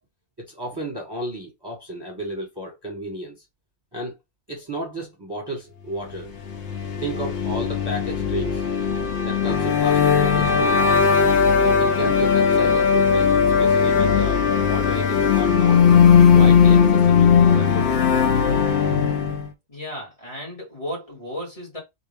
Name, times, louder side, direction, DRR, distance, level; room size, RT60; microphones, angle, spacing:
voice 1, 0.4-3.3 3.9-4.1 4.5-6.3 7.0-8.6 9.2-10.8 11.6-15.8 16.3-18.1, right 1 dB, 20° right, 1.0 m, -32 dB
sound 1, 6.5-19.5, left 6 dB, 65° left, 1.0 m, -18 dB
voice 2, 19.7-21.8, equal, 30° left, 1.8 m, -34 dB
3.6 x 2.6 x 3.3 m
omnidirectional pair, 1.3 m